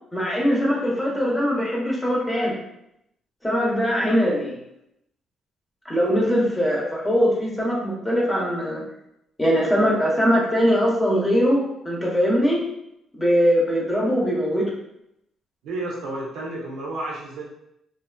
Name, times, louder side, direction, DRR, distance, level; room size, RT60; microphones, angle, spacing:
voice 1, 0.1-2.6 3.4-4.6 5.8-8.8 9.4-12.6 13.1-14.7, equal, 15° left, -3 dB, 0.8 m, -21 dB
voice 2, 15.6-17.4, right 2 dB, 85° right, -2 dB, 0.7 m, -31 dB
2.6 x 2.4 x 2.2 m, 0.81 s
cardioid pair, 90°, 0 cm